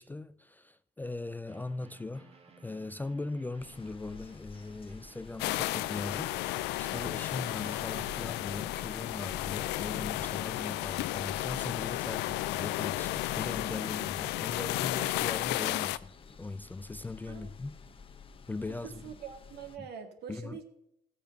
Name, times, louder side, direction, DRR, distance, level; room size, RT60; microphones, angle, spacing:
voice 1, 0.0-17.8 18.5-19.2 19.8-19.9 20.3-20.6, left 3 dB, 10° left, 0.3 m, -40 dB
sound 1, 1.5-8.4, right 4 dB, 35° right, 1.5 m, -56 dB
sound 2, 3.6-19.8, left 6 dB, 30° left, 0.9 m, -50 dB
sound 3, 5.4-16.0, left 17 dB, 90° left, 0.4 m, -33 dB
voice 2, 18.8-20.6, right 7 dB, 75° right, 2.0 m, -44 dB
15.0 x 6.9 x 6.5 m
cardioid pair, 110°, 17 cm